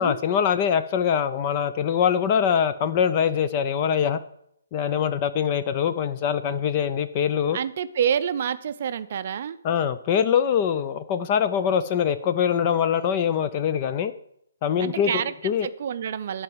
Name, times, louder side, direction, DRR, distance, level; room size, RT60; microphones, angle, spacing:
voice 1, 0.0-4.2 4.7-7.6 9.6-14.1 14.6-15.1 15.4-15.7, left 8 dB, 20° left, 11 dB, 0.4 m, -23 dB
voice 2, 7.5-9.6 14.8-15.3 15.6-16.4, right 8 dB, 40° right, 12 dB, 0.5 m, -27 dB
10.5 x 4.7 x 7.8 m, 0.73 s
hypercardioid pair, 170°, 0 cm